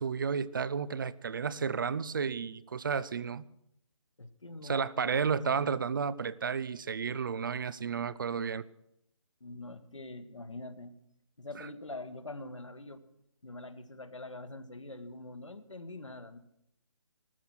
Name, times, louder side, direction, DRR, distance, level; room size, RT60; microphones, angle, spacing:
voice 1, 0.0-3.4 4.6-8.6 11.6-11.7, right 6 dB, 40° right, 18 dB, 0.6 m, -32 dB
voice 2, 4.2-5.7 9.4-11.0 11.4-13.0 13.4-16.4, left 2 dB, 70° left, 10 dB, 1.7 m, -44 dB
15.5 x 13.5 x 6.1 m, 0.77 s
figure-of-eight pair, 140°, 16 cm